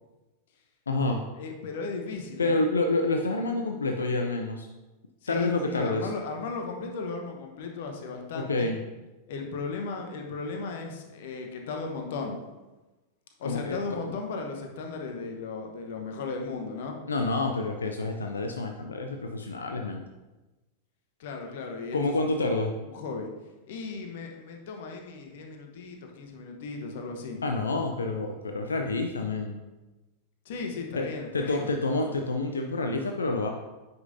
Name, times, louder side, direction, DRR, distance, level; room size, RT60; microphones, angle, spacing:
voice 1, 0.9-1.2 2.4-4.7 5.3-6.1 8.3-8.8 13.4-13.8 14.0-14.1 17.1-20.0 21.9-22.7 27.4-29.6 30.9-31.1 31.3-33.5, left 2 dB, 75° left, 4 dB, 0.5 m, -28 dB
voice 2, 1.4-2.6 5.2-5.5 5.7-8.7 9.3-12.4 13.4-17.0 21.2-22.3 22.9-23.3 23.7-27.4 30.4-31.7, left 4 dB, 55° left, 3 dB, 1.0 m, -36 dB
9.4 x 5.4 x 2.7 m, 1.1 s
figure-of-eight pair, 90°, 0 cm